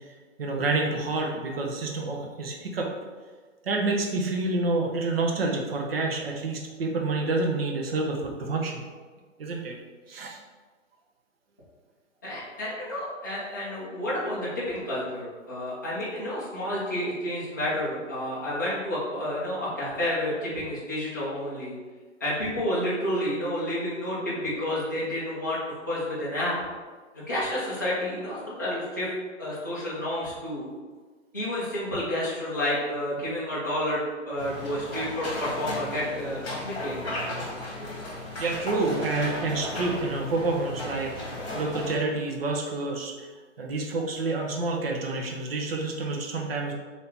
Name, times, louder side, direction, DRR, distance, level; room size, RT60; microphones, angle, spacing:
voice 1, 0.4-2.9 3.6-8.8 9.4-9.8 10.1-10.4 38.1-41.3 41.5-43.3 43.6-46.7, right 3 dB, 50° right, 1 dB, 0.7 m, -28 dB
voice 2, 12.2-21.8 22.2-26.6 27.1-29.1 29.4-30.6 31.3-36.9 37.3-37.4, left 1 dB, 15° left, -10 dB, 0.4 m, -30 dB
sound 1, 34.4-42.0, left 1 dB, 55° left, 1.1 m, -35 dB
2.8 x 2.7 x 3.5 m, 1.4 s
hypercardioid pair, 155°, 38 cm